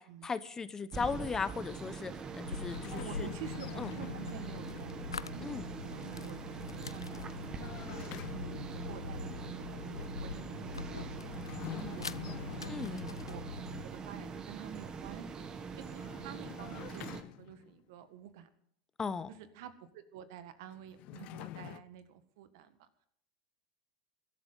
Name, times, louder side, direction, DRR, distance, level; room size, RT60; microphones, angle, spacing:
voice 1, 0.2-3.3 3.8-3.9 5.4-5.7 12.7-13.1 19.0-19.3, left 5 dB, 20° left, 15 dB, 0.9 m, -37 dB
sound 1, 0.9-17.2, right 5 dB, 30° right, 1.7 m, -43 dB
sound 2, 2.4-13.8, left 4 dB, 85° left, 0.5 m, -44 dB
sound 3, 2.6-4.9 6.8-8.7 11.2-13.3 15.7-17.8 20.7-21.8, left 15 dB, 50° left, 0.6 m, -47 dB
voice 2, 2.9-13.6 13.8-15.5 15.8-18.5 19.3-22.9, right 10 dB, 60° right, 11 dB, 1.7 m, -50 dB
22.0 x 12.5 x 3.9 m, 0.67 s
figure-of-eight pair, 80°, 2 cm